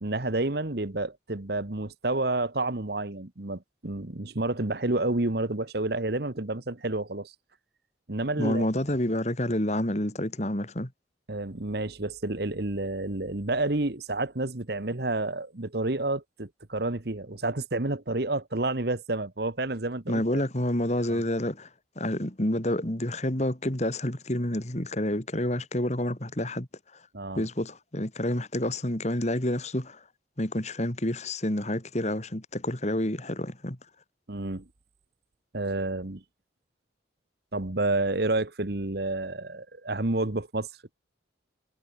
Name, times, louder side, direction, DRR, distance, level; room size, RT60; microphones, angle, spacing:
voice 1, 0.0-7.3 8.1-8.7 11.3-20.4 21.1-21.2 27.1-27.5 34.3-34.6 35.5-36.2 37.5-40.7, right 2 dB, 55° right, 1.4 m, -29 dB
voice 2, 8.4-10.9 20.1-21.7 22.0-26.7 27.4-30.0 30.4-33.8, left 1 dB, 35° left, 2.6 m, -28 dB
head